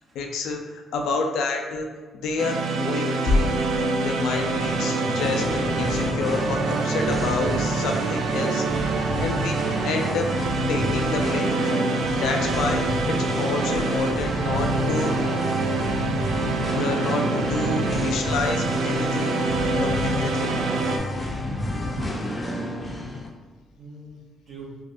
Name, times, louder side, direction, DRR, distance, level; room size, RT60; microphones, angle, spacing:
voice 1, 0.1-1.9 2.2-3.4 4.0-8.6 9.2-9.6 9.8-10.3 10.7-11.5 12.1-12.8 13.4-15.1 16.7-19.3 19.8-20.5, left 3 dB, 85° left, 3 dB, 0.4 m, -28 dB
sound 1, 2.4-21.0, right 3 dB, 75° right, 0.3 m, -26 dB
Singing, 4.1-23.3, left 1 dB, 20° left, 0.6 m, -30 dB
voice 2, 21.4-22.3 23.8-24.2 24.5-24.7, equal, 55° right, -4 dB, 1.1 m, -40 dB
3.5 x 2.4 x 2.5 m, 1.4 s
cardioid pair, 90°, 0 cm